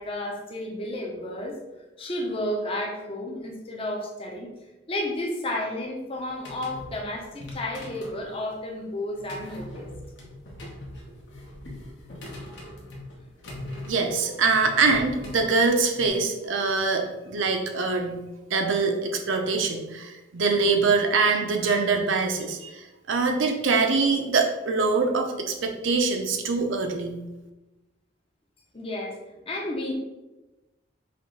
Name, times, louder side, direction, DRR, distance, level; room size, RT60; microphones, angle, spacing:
voice 1, 0.0-1.6 2.0-4.5 4.9-9.9 28.7-29.9, left 1 dB, 25° left, -1 dB, 0.7 m, -32 dB
sound 1, 6.1-16.1, left 1 dB, 60° left, 0.9 m, -41 dB
voice 2, 13.9-18.2 18.5-27.2, right 4 dB, 70° right, 4 dB, 0.6 m, -24 dB
5.7 x 2.5 x 3.2 m, 1.1 s
head